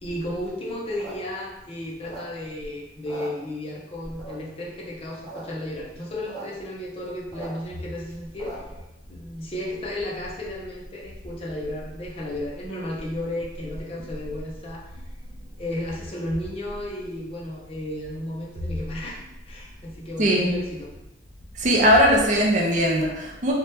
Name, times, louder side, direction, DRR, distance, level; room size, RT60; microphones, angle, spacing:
voice 1, 0.0-8.6 9.1-15.0 15.6-20.9, left 1 dB, 30° left, -3 dB, 0.5 m, -33 dB
sound 1, 0.9-2.6 2.9-3.8 4.2-4.6 5.0-5.4 5.7-5.8 5.9-6.5 6.8-8.8, right 3 dB, 15° left, 1.0 m, -40 dB
voice 2, 20.2-20.5 21.5-23.5, equal, 40° right, -1 dB, 0.5 m, -19 dB
2.8 x 2.1 x 3.3 m, 0.97 s
head